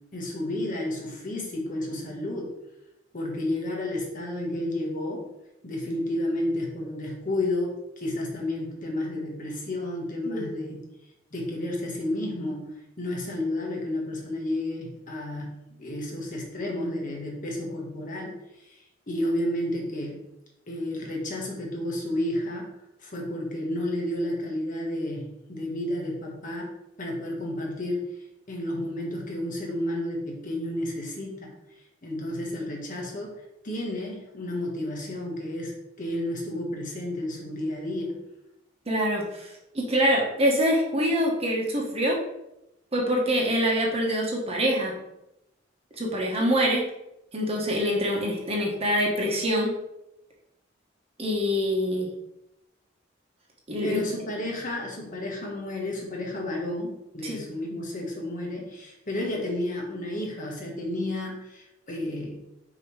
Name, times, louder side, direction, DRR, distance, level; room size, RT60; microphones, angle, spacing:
voice 1, 0.1-2.5 3.1-5.3 5.6-10.8 11.3-20.2 20.7-26.7 27.0-28.1 28.5-31.5 32.0-38.2 53.8-62.4, left 1 dB, 45° left, -1 dB, 1.4 m, -31 dB
voice 2, 38.9-39.5 39.7-42.2 42.9-44.9 46.0-46.9 47.3-49.7 51.2-52.1 53.7-54.0 57.2-57.4, equal, 30° right, -1 dB, 1.2 m, -25 dB
6.3 x 3.1 x 4.8 m, 0.89 s
head